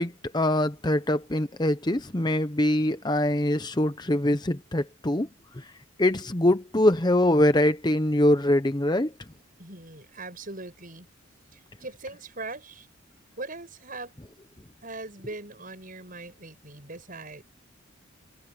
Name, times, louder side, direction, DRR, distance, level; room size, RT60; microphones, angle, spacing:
voice 1, 0.0-5.3 5.6-5.7 6.0-9.1, left 1 dB, 20° left, 0.8 m, -23 dB
voice 2, 9.6-11.1 11.5-12.9 13.4-14.1 14.8-17.4, right 2 dB, 40° right, 7.6 m, -40 dB
head